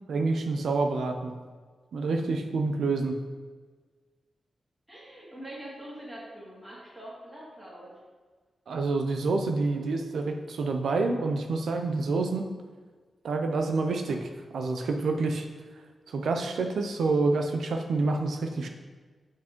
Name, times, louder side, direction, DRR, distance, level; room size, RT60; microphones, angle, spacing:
voice 1, 0.1-1.3 1.9-3.2 8.7-12.5 13.2-15.5 16.1-18.7, right 3 dB, 85° right, 4 dB, 0.6 m, -28 dB
voice 2, 4.9-7.9, right 1 dB, 5° right, -8 dB, 1.9 m, -44 dB
5.9 x 4.7 x 4.4 m, 1.4 s
wide cardioid pair, 115°, 0 cm